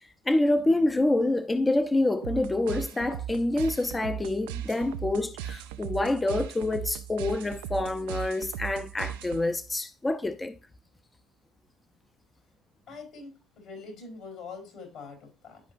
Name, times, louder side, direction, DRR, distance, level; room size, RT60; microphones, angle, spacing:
voice 1, 0.3-10.6, left 2 dB, 15° left, 0.5 m, -27 dB
sound 1, 2.2-9.7, right 11 dB, 75° right, 0.3 m, -38 dB
voice 2, 12.9-15.6, left 4 dB, 60° left, 3.4 m, -44 dB
11.0 x 5.0 x 2.5 m
hypercardioid pair, 60°, 0 cm